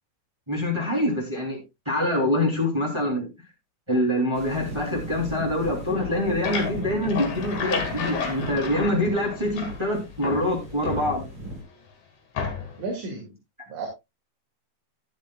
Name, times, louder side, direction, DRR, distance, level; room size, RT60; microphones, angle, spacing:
voice 1, 0.5-1.6 1.8-3.3 3.9-11.3, left 1 dB, 10° right, 0 dB, 2.6 m, -25 dB
sound 1, 4.3-11.6, equal, 40° right, 6.2 m, -37 dB
sound 2, 6.0-9.9 10.2-11.6 12.3-12.9, left 5 dB, 60° left, 3.6 m, -32 dB
voice 2, 12.8-13.3 13.7-13.9, right 3 dB, 70° right, 0 dB, 3.6 m, -32 dB
13.0 x 10.5 x 2.3 m, 0.22 s
omnidirectional pair, 3.7 m